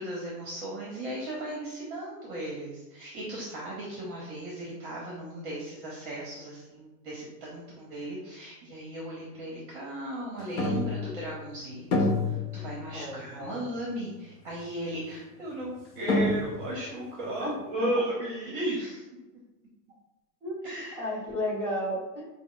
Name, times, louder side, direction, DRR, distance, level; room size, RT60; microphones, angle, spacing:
voice 1, 0.0-19.0 20.6-21.1, right 1 dB, 35° right, -4 dB, 0.8 m, -36 dB
sound 1, 10.6-11.5 11.9-13.1 13.5-13.6 14.5-14.6 15.7-15.8 16.1-16.9, left 2 dB, 50° left, 0.7 m, -28 dB
voice 2, 12.9-13.6 17.4-18.0 20.4-22.3, left 1 dB, 5° left, -12 dB, 0.6 m, -33 dB
4.8 x 2.0 x 3.8 m, 1.1 s
supercardioid pair, 175°, 48 cm